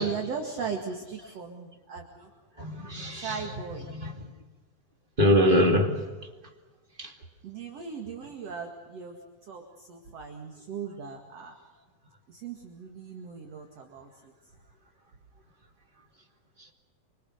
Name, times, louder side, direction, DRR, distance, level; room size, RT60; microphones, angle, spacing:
voice 1, 0.0-2.3 3.1-3.9 7.4-9.2 9.5-11.5 12.3-14.3, right 6 dB, 45° right, 2.8 m, -38 dB
voice 2, 2.6-4.1 5.2-6.0 7.0-7.1, equal, 15° right, 1.9 m, -24 dB
26.0 x 26.0 x 6.6 m
omnidirectional pair, 4.3 m